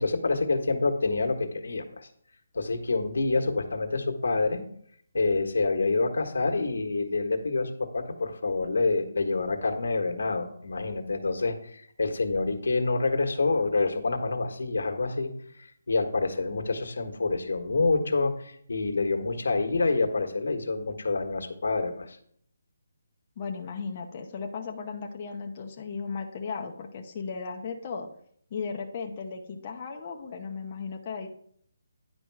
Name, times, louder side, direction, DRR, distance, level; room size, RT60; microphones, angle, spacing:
voice 1, 0.0-2.1 2.5-4.7 5.1-15.3 15.6-22.2, left 3 dB, 85° left, 4 dB, 1.5 m, -27 dB
voice 2, 23.4-28.1 28.5-31.3, left 5 dB, 30° left, 1 dB, 0.8 m, -36 dB
10.0 x 5.2 x 4.8 m, 0.62 s
hypercardioid pair, 170°, 0 cm